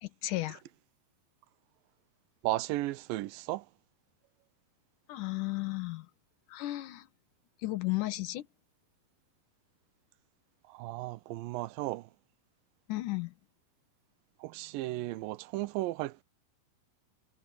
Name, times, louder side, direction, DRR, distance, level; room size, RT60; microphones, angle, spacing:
voice 1, 0.0-0.6 5.1-6.1 6.5-7.0 7.6-8.4 12.9-13.3, left 18 dB, 65° left, 2.3 m, -34 dB
voice 2, 2.4-3.7 10.7-12.1 14.4-16.2, right 17 dB, 80° right, 2.2 m, -35 dB
omnidirectional pair, 4.5 m